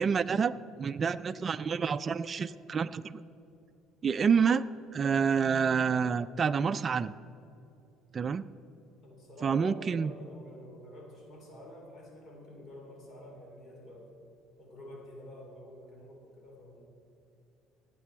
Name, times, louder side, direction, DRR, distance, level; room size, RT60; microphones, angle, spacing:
voice 1, 0.0-3.2 4.0-4.6 4.9-7.1 8.1-8.5 9.4-10.1, right 6 dB, 30° right, 12 dB, 0.3 m, -28 dB
voice 2, 9.0-14.1 14.6-16.8, left 1 dB, 45° left, 0 dB, 3.1 m, -49 dB
17.5 x 8.4 x 4.5 m, 2.8 s
cardioid pair, 120°, 0 cm